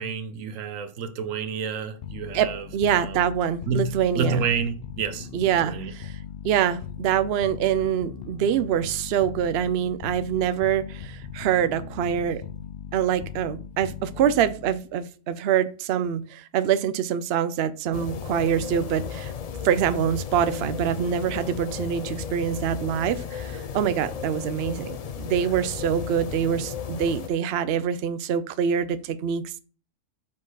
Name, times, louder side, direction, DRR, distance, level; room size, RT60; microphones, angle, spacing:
voice 1, 0.0-2.7 3.0-3.2 3.7-5.9, right 5 dB, 90° right, 1.1 m, -29 dB
sound 1, 2.0-14.9, left 8 dB, 55° left, 0.8 m, -39 dB
voice 2, 2.3-4.4 5.3-6.2 6.4-12.4 12.9-19.3 19.6-29.6, right 9 dB, 65° right, 0.7 m, -25 dB
sound 2, 17.9-27.3, left 7 dB, 70° left, 0.3 m, -34 dB
5.6 x 4.4 x 4.7 m
omnidirectional pair, 1.3 m